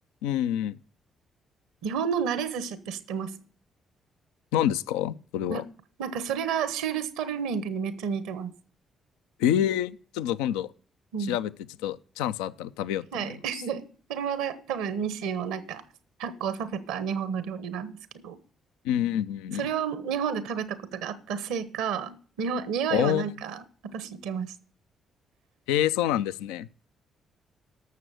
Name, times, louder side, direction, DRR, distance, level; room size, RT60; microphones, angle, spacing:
voice 1, 0.2-0.7 4.5-5.6 9.4-10.7 11.2-11.5 11.8-13.4 18.8-19.7 22.9-23.3 25.7-26.7, left 11 dB, 85° left, 0.4 m, -27 dB
voice 2, 1.8-3.3 5.5-5.6 6.0-8.5 11.1-11.4 13.1-15.8 16.2-18.0 18.2-18.4 19.5-23.6 23.9-24.5, right 7 dB, 80° right, 1.0 m, -31 dB
12.0 x 6.8 x 6.4 m
hypercardioid pair, 45°, 0 cm